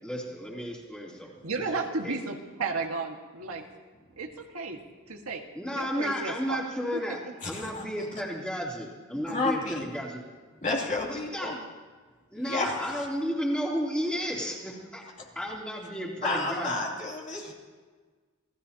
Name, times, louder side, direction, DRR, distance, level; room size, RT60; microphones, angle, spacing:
voice 1, 0.0-1.3 1.7-2.2 5.5-10.2 11.0-11.5 12.3-15.0 15.3-16.9, equal, 5° left, -4 dB, 3.1 m, -33 dB
voice 2, 1.4-3.6 4.2-4.8 5.1-5.4 5.8-6.6 6.9-7.3 17.4-17.5, right 4 dB, 90° right, 2 dB, 1.7 m, -33 dB
voice 3, 7.4-7.8 9.1-9.9 10.6-11.6 12.5-13.1 16.2-17.5, left 2 dB, 35° left, -1 dB, 2.8 m, -31 dB
27.5 x 17.0 x 2.9 m, 1.4 s
head